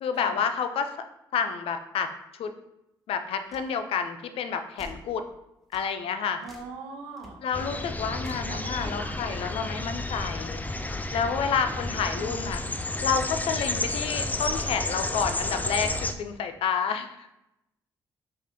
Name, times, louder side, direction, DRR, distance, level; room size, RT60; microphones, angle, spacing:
voice 1, 0.0-0.9 1.3-2.5 3.1-5.2 5.7-6.4 7.4-10.6 11.1-12.6 13.0-17.3, left 6 dB, 75° left, 8 dB, 0.4 m, -29 dB
sound 1, 3.5-3.7 4.8-5.1 5.7-5.9 6.4-6.7 7.2-7.3 8.2-8.5, left 1 dB, ahead, 1.1 m, -47 dB
voice 2, 6.4-7.4 8.5-9.2 11.6-12.4, right 4 dB, 85° right, 2 dB, 0.7 m, -42 dB
sound 2, 7.5-16.1, left 2 dB, 15° left, 0.4 m, -31 dB
4.9 x 2.5 x 3.6 m, 0.87 s
supercardioid pair, 50°, 10 cm